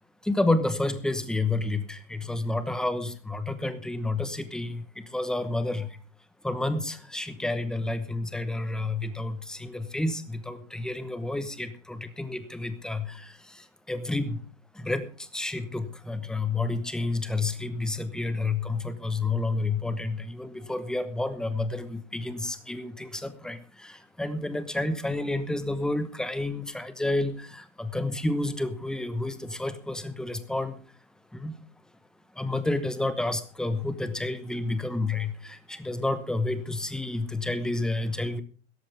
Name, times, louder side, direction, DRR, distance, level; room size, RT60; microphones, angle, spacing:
voice 1, 0.2-6.0 6.4-14.4 14.7-30.8 31.3-31.6 32.3-38.4, left 2 dB, ahead, 12 dB, 1.0 m, -30 dB
16.5 x 14.0 x 3.4 m, 0.39 s
supercardioid pair, 155°, 39 cm